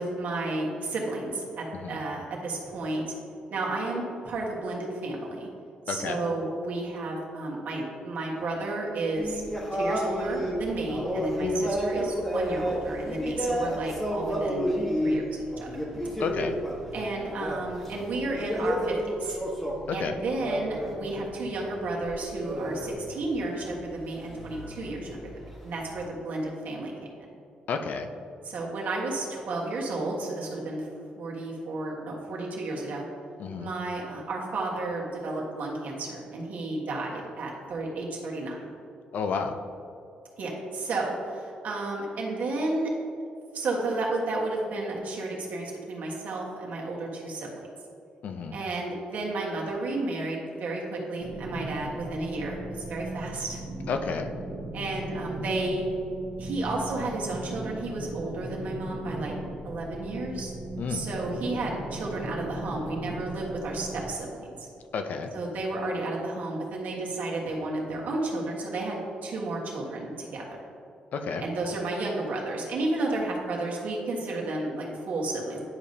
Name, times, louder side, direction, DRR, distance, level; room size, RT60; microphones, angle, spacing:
voice 1, 0.0-3.0 3.5-5.5 5.9-9.4 9.7-14.7 15.0-15.7 16.9-19.4 19.9-25.3 25.6-26.9 28.4-30.9 31.2-33.0 33.6-38.7 40.4-42.9 43.5-47.7 48.5-53.6 54.7-55.9 56.4-59.3 59.6-60.5 60.9-64.5 65.3-70.4 71.4-75.6, right 2 dB, 65° right, -2 dB, 1.4 m, -32 dB
voice 2, 5.9-6.2 11.4-11.7 16.2-16.6 19.9-20.1 27.7-28.1 33.4-33.7 39.1-39.6 48.2-48.5 53.9-54.3 60.8-61.1 64.9-65.3 71.1-71.4, left 5 dB, 60° left, 7 dB, 0.5 m, -31 dB
sound 1, 9.2-21.3 21.6-26.0, equal, 10° left, 1.2 m, -31 dB
sound 2, 51.2-64.1, right 1 dB, 35° right, 0.9 m, -38 dB
9.6 x 5.0 x 2.7 m, 2.6 s
cardioid pair, 125°, 3 cm